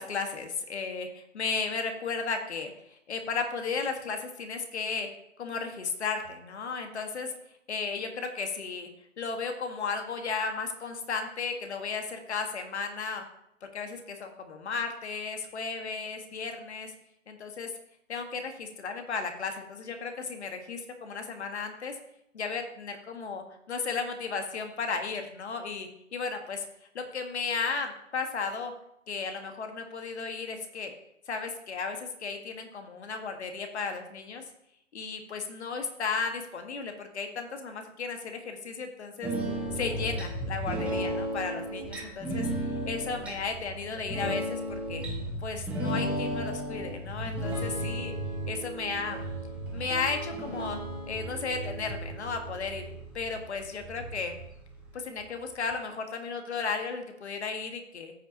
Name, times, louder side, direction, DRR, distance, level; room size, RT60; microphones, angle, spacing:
voice 1, 0.0-5.1 5.4-7.3 7.7-8.9 9.2-13.2 13.6-16.9 17.3-17.7 18.1-21.9 22.3-26.6 26.9-28.7 29.1-30.9 31.3-34.4 34.9-42.5 42.9-45.0 45.4-48.1 48.5-49.2 49.7-50.8 51.1-54.3 54.9-58.1, left 5 dB, 55° left, 5 dB, 1.5 m, -34 dB
sound 1, 39.2-54.9 55.2-55.3 55.6-55.7, right 1 dB, 5° right, 1.5 m, -34 dB
14.5 x 5.8 x 2.8 m, 0.77 s
hypercardioid pair, 145°, 39 cm